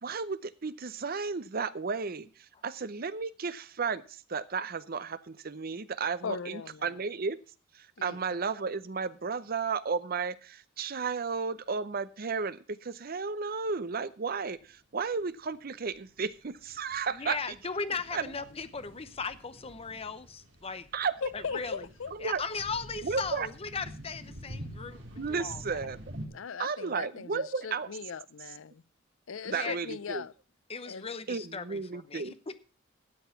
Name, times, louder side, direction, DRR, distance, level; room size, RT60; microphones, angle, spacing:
voice 1, 0.0-7.4 7.7-17.4 18.1-18.3 20.9-21.2 22.1-22.4 23.0-23.5 25.2-26.0 26.6-27.9 29.4-30.2 31.3-32.3, right 5 dB, 50° right, 0.7 m, -33 dB
voice 2, 6.2-6.9 8.0-8.2 21.2-22.1 26.3-28.8 29.3-30.3 30.9-31.1, left 6 dB, 80° left, 0.6 m, -39 dB
sound 1, 14.6-14.7 15.0-15.2 15.5-26.3, equal, 65° right, 3.6 m, -47 dB
voice 3, 17.1-20.9 21.3-21.8 22.2-25.6 29.5-29.8 30.7-32.6, left 4 dB, 30° left, 0.8 m, -37 dB
13.0 x 7.9 x 5.8 m
head